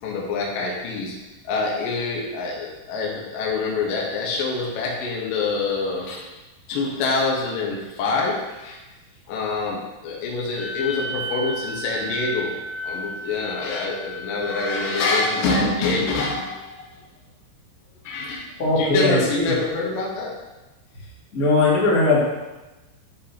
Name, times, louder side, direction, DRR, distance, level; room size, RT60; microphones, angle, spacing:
voice 1, 0.0-1.2 1.4-6.3 6.7-8.8 9.3-12.5 12.8-16.9 18.0-18.5 18.8-20.4, left 3 dB, 70° left, -3 dB, 2.2 m, -26 dB
Wind instrument woodwind instrument, 10.5-15.2, equal, 70° right, 4.2 m, -33 dB
voice 2, 18.6-19.5 21.3-22.2, left 2 dB, 85° left, -8 dB, 0.8 m, -19 dB
9.9 x 5.6 x 2.9 m, 1.1 s
omnidirectional pair, 5.7 m